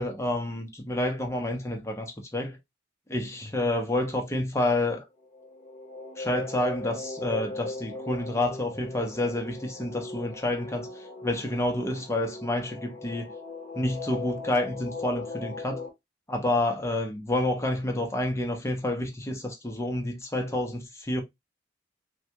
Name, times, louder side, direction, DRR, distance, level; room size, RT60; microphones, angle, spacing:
voice 1, 0.0-2.6 3.1-5.0 6.2-10.9 11.2-13.3 13.7-15.8 16.3-21.2, left 1 dB, 15° left, 0.6 m, -29 dB
sound 1, 5.2-15.9, left 3 dB, 35° left, 1.0 m, -39 dB
3.3 x 2.3 x 2.8 m
head